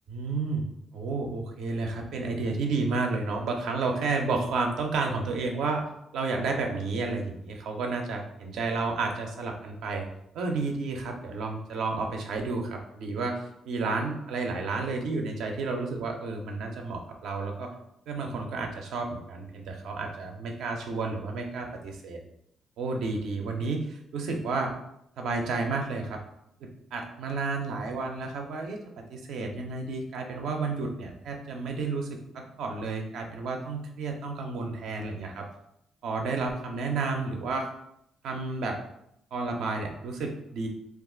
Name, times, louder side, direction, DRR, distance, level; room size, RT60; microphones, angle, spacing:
voice 1, 0.1-0.7 0.9-5.8 6.1-10.1 10.3-13.4 13.7-17.7 18.1-22.2 22.8-24.7 25.2-26.2 26.6-28.8 29.1-35.5 36.0-37.7 38.2-38.8 39.3-40.7, right 3 dB, 80° right, 2 dB, 0.5 m, -31 dB
2.4 x 2.3 x 3.7 m, 0.78 s
cardioid pair, 75°, 0 cm